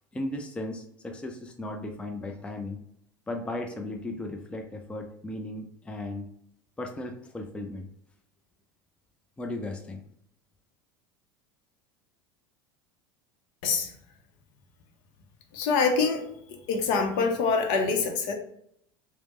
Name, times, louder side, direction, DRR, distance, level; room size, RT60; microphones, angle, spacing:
voice 1, 0.1-2.8 3.3-6.3 6.8-7.9 9.4-10.0, left 1 dB, 10° left, 3 dB, 0.4 m, -36 dB
voice 2, 15.5-16.2 16.7-18.3, left 4 dB, 60° left, 4 dB, 0.6 m, -25 dB
3.0 x 2.0 x 2.9 m, 0.70 s
hypercardioid pair, 80°, 12 cm